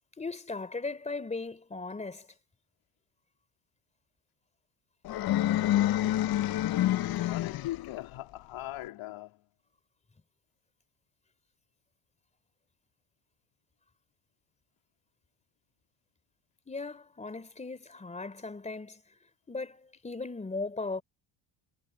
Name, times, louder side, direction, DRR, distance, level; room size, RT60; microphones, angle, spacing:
voice 1, 0.2-2.2 16.7-19.0 19.5-21.0, left 3 dB, 15° left, 3.4 m, -37 dB
sound 1, 5.0-7.9, left 13 dB, 50° left, 0.6 m, -27 dB
voice 2, 7.3-9.4, left 15 dB, 90° left, 3.0 m, -39 dB
cardioid pair, 180°, 47 cm